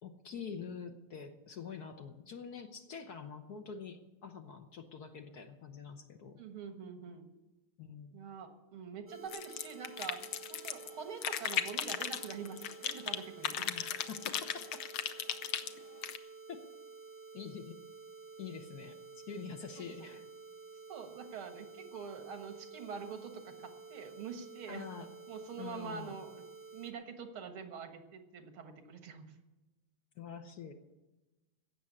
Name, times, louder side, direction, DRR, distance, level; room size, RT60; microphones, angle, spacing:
voice 1, 0.0-6.4 7.8-8.2 13.6-14.8 16.5-16.6 17.3-17.7 18.4-19.0 19.3-20.2 24.7-25.1 25.6-26.2 30.2-30.7, left 6 dB, 55° left, 6 dB, 1.3 m, -46 dB
voice 2, 6.4-7.3 8.1-10.2 10.5-13.7 20.0-20.1 20.9-24.9 25.3-26.4 26.7-29.3, right 6 dB, 80° right, 6 dB, 2.3 m, -45 dB
sound 1, 9.1-26.9, right 4 dB, 10° right, 1.1 m, -51 dB
sound 2, 9.3-10.9 11.2-13.2 13.4-16.2, left 10 dB, 80° left, 1.6 m, -36 dB
16.5 x 6.9 x 9.7 m, 1.1 s
omnidirectional pair, 2.3 m